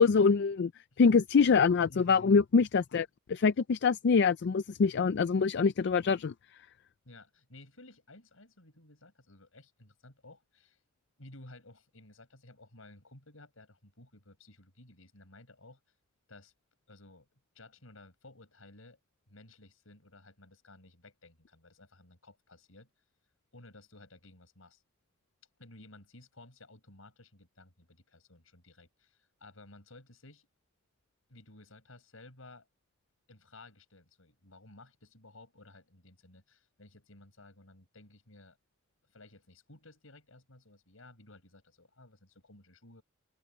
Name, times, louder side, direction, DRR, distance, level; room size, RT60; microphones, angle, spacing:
voice 1, 0.0-0.7 1.0-6.3, left 5 dB, 55° left, 0.4 m, -25 dB
voice 2, 1.9-2.4 7.0-10.8 11.2-15.8 16.3-16.5 16.9-19.0 19.3-22.9 23.5-24.8 25.6-30.5 31.3-32.7 33.3-38.6 39.1-43.0, left 2 dB, 75° left, 6.2 m, -55 dB
head